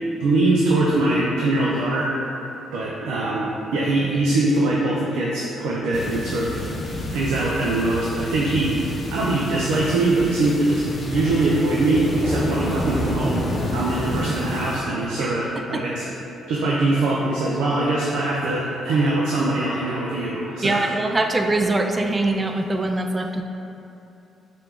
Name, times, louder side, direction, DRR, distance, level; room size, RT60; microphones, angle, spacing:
voice 1, 0.2-2.1 2.7-6.5 7.1-8.8 9.1-13.4 13.7-16.0 16.5-20.9, right 2 dB, 90° right, -5 dB, 0.4 m, -22 dB
sound 1, 5.9-14.8, left 1 dB, 35° left, 0.6 m, -29 dB
voice 2, 20.6-23.4, right 2 dB, 25° right, 4 dB, 0.3 m, -22 dB
4.4 x 2.6 x 3.5 m, 2.8 s
cardioid pair, 90°, 0 cm